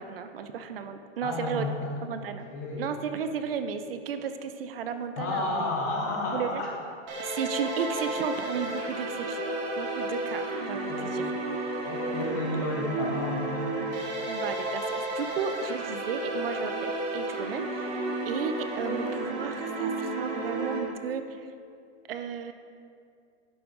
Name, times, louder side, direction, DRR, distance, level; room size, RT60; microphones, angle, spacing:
voice 1, 0.0-1.8 2.0-2.5 2.8-5.7 6.3-6.6 7.2-11.3 12.6-12.7 14.3-21.5 22.1-22.5, right 7 dB, 55° right, 9 dB, 0.7 m, -34 dB
voice 2, 1.2-1.9 2.2-2.9 5.2-6.7 9.0-9.1 10.9-11.5 11.8-13.7, left 2 dB, 15° left, -1 dB, 0.4 m, -32 dB
sound 1, 7.1-20.8, right 2 dB, 35° right, 1.8 m, -32 dB
11.0 x 8.4 x 3.9 m, 2.3 s
supercardioid pair, 175°, 35 cm